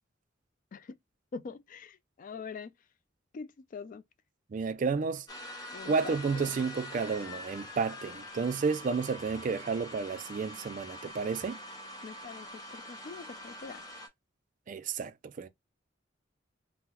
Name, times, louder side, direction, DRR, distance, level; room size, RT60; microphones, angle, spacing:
voice 1, 1.3-2.7 3.3-4.0 5.7-6.5 12.0-13.8, left 5 dB, 45° left, 0.3 m, -44 dB
voice 2, 4.5-5.3 5.9-11.6 14.7-15.5, right 5 dB, 40° right, 0.3 m, -31 dB
sound 1, 5.3-14.1, left 1 dB, 20° left, 0.8 m, -45 dB
2.9 x 2.0 x 3.6 m
head